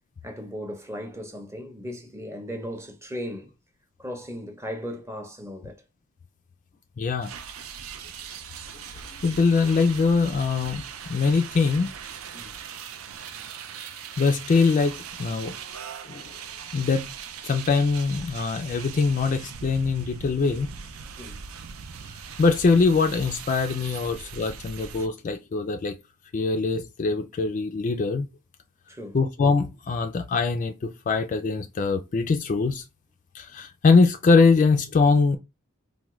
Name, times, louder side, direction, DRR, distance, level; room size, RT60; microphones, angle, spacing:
voice 1, 0.2-3.5 4.0-5.8 12.3-12.5 21.2-21.4 24.0-24.2 28.9-29.2, equal, 15° right, 0.6 m, -37 dB
voice 2, 7.0-7.3 9.2-10.8 11.1-11.9 14.2-15.6 16.0-16.4 16.7-17.1 17.4-20.7 22.4-25.9 26.3-28.3 29.1-32.8 33.3-35.4, left 4 dB, 35° left, 0.3 m, -22 dB
sound 1, 7.2-25.1, right 7 dB, 75° right, 0.4 m, -40 dB
3.5 x 2.1 x 3.0 m
head